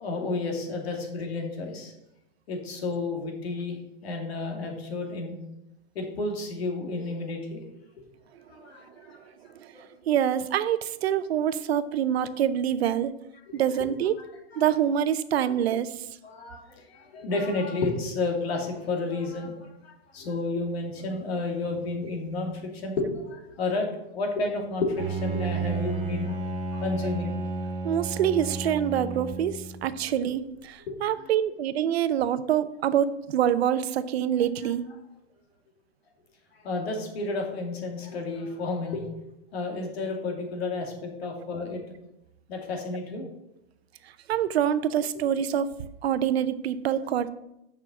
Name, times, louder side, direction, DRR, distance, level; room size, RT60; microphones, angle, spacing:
voice 1, 0.0-1.9 2.5-3.8 4.0-5.4 5.9-7.6 8.5-9.3 9.7-9.8 13.5-13.6 16.2-26.4 26.7-27.4 30.0-30.1 30.9-31.3 36.5-39.1 39.5-41.8 42.5-43.3, left 3 dB, 70° left, 2 dB, 2.5 m, -31 dB
voice 2, 9.5-13.1 13.5-14.2 14.6-16.1 27.8-34.8 44.3-45.7 46.0-47.3, right 10 dB, 70° right, 14 dB, 0.7 m, -26 dB
Bowed string instrument, 25.0-29.9, right 3 dB, 30° right, 1.8 m, -32 dB
6.8 x 5.9 x 6.9 m, 0.87 s
supercardioid pair, 175°, 32 cm